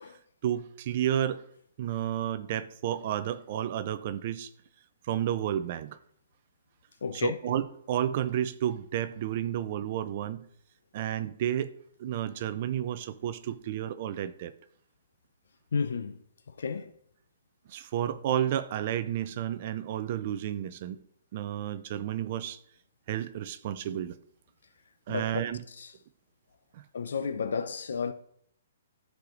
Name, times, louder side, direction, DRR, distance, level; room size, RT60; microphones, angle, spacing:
voice 1, 0.4-1.4 1.8-4.5 5.0-6.0 7.1-10.4 10.9-11.7 12.0-14.5 17.7-21.0 21.3-22.6 23.1-24.1 25.1-25.6 26.7-26.8, right 11 dB, 35° right, 0.5 m, -31 dB
voice 2, 7.0-7.4 15.7-16.2 16.5-16.9 25.1-25.4 25.7-25.9 26.9-28.1, left 5 dB, 80° left, 0.7 m, -32 dB
13.5 x 4.9 x 3.9 m
hypercardioid pair, 170°, 0 cm